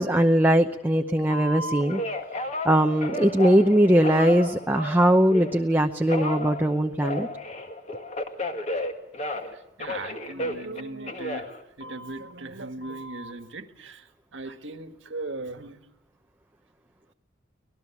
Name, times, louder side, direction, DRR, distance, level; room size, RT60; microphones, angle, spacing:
voice 1, 0.0-2.0 2.6-7.3, right 1 dB, 10° right, 4 dB, 0.8 m, -20 dB
Telephone, 1.3-5.6 6.1-9.5 9.8-12.3 12.8-13.3, left 1 dB, 35° left, 2.0 m, -33 dB
voice 2, 9.5-11.5 11.8-14.1 14.3-15.8, right 2 dB, 70° right, 8 dB, 1.7 m, -38 dB
25.0 x 19.0 x 7.2 m, 0.84 s
head